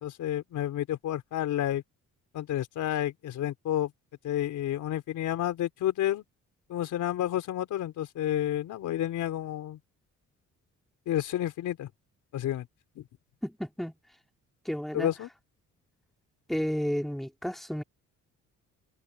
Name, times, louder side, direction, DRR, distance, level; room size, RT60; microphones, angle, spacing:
voice 1, 0.0-1.8 2.3-3.9 4.2-6.2 6.7-9.8 11.1-11.9 12.3-12.7 13.0-13.1 14.9-15.3, left 12 dB, 80° left, 4.1 m, -30 dB
voice 2, 13.4-13.9 14.6-15.1 16.5-17.8, equal, ahead, 2.5 m, -32 dB
open air
cardioid pair, 90°, 30 cm